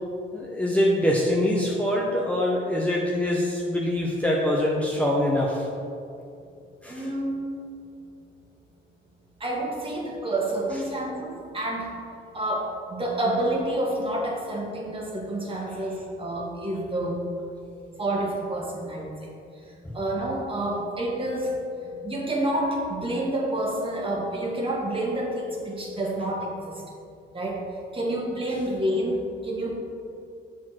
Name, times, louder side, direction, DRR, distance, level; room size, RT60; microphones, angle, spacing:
voice 1, 0.3-5.7 6.8-7.1, left 1 dB, 5° left, -3 dB, 1.0 m, -24 dB
voice 2, 6.9-7.4 9.4-11.9 12.3-17.2 18.0-19.3 19.9-21.5 21.8-26.8 27.3-27.6 27.9-29.7, right 1 dB, 25° right, -2 dB, 1.8 m, -28 dB
7.2 x 6.2 x 4.5 m, 2.4 s
cardioid pair, 90°, 20 cm